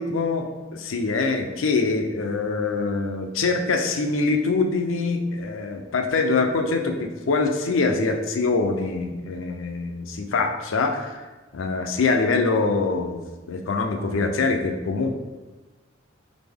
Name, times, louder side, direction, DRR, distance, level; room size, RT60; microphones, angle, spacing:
voice 1, 0.0-11.2 11.5-15.1, left 3 dB, 90° left, 5 dB, 0.5 m, -24 dB
4.0 x 3.4 x 3.5 m, 1.2 s
head